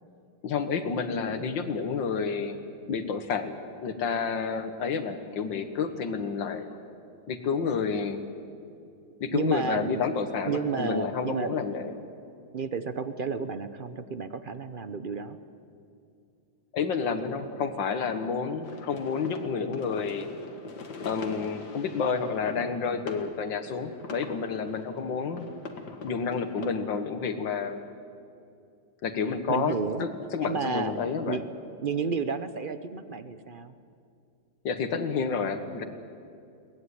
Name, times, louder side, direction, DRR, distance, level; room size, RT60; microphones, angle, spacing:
voice 1, 0.4-2.6 2.9-3.6 3.8-6.7 7.3-8.2 9.2-12.0 16.7-20.3 21.0-25.5 26.0-27.8 29.0-31.4 34.6-35.8, left 5 dB, 80° left, 9 dB, 2.0 m, -30 dB
voice 2, 9.2-10.1 10.4-11.5 12.5-15.4 29.5-30.1 30.4-30.9 31.2-31.4 31.8-33.7, right 5 dB, 50° right, 11 dB, 0.6 m, -31 dB
sound 1, 18.6-26.7, left 4 dB, 65° left, 2.2 m, -43 dB
22.5 x 19.0 x 9.8 m, 2.5 s
omnidirectional pair, 2.0 m